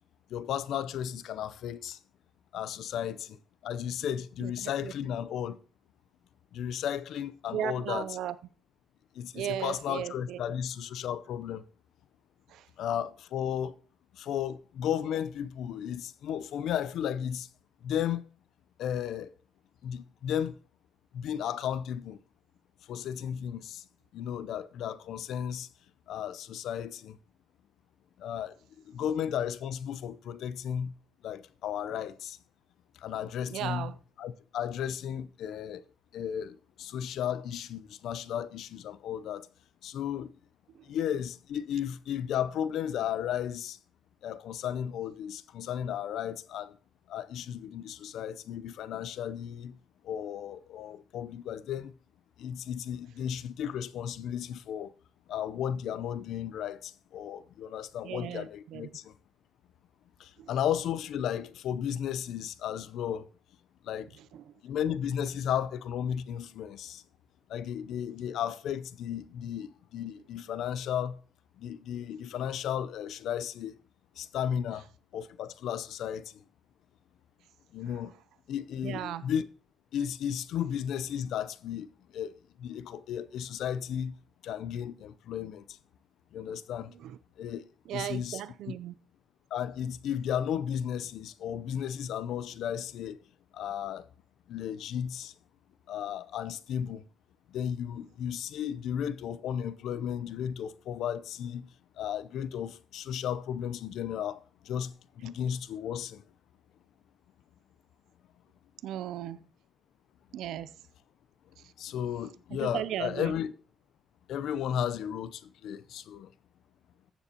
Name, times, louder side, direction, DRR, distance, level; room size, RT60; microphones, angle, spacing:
voice 1, 0.3-2.0 2.5-5.6 6.5-8.1 9.1-11.6 12.8-13.7 14.1-17.5 17.8-18.2 18.8-19.3 19.8-20.6 21.1-22.2 22.9-23.8 24.1-25.7 26.1-27.2 28.2-28.6 28.8-30.9 31.2-32.4 33.0-33.9 34.2-35.8 36.1-39.5 39.8-40.3 40.8-43.8 44.2-46.8 47.1-49.8 50.0-51.9 52.4-54.9 55.3-59.1 60.2-63.3 63.8-64.1 64.6-67.0 67.5-71.2 71.6-73.7 74.2-74.9 75.1-76.4 77.7-78.1 78.5-79.5 79.9-82.3 82.6-84.2 84.4-85.8 86.3-86.9 87.4-87.6 87.9-88.4 89.5-93.2 93.5-94.1 94.5-95.3 95.9-97.0 97.5-101.7 102.0-106.2 111.8-113.5 114.3-116.3, left 9 dB, 80° left, 0.6 m, -34 dB
voice 2, 4.4-4.9 7.5-8.3 9.3-10.4 12.5-12.7 33.5-34.0 58.0-58.8 60.4-60.5 64.3-64.4 78.8-79.3 86.9-87.2 87.9-88.9 108.8-109.5 110.3-110.7 112.5-113.3, right 11 dB, 85° right, 0.4 m, -36 dB
14.5 x 7.0 x 2.9 m
cardioid pair, 90°, 0 cm